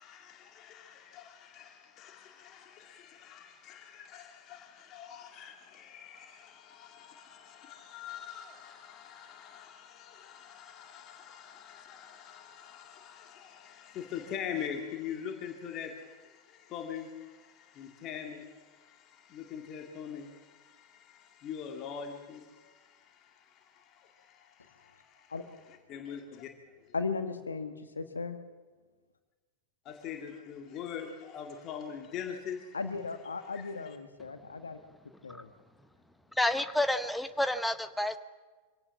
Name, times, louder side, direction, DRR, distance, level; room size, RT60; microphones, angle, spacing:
voice 1, 0.0-25.4 25.7-26.5 26.9-27.0 29.8-32.8 33.4-34.0, left 8 dB, 35° left, 2.2 m, -43 dB
voice 2, 26.9-28.4 32.7-34.8 35.2-35.5, left 4 dB, 75° left, 1.7 m, -36 dB
voice 3, 36.4-38.2, left 1 dB, 5° left, 1.0 m, -29 dB
25.0 x 17.0 x 7.2 m
figure-of-eight pair, 90°, 0 cm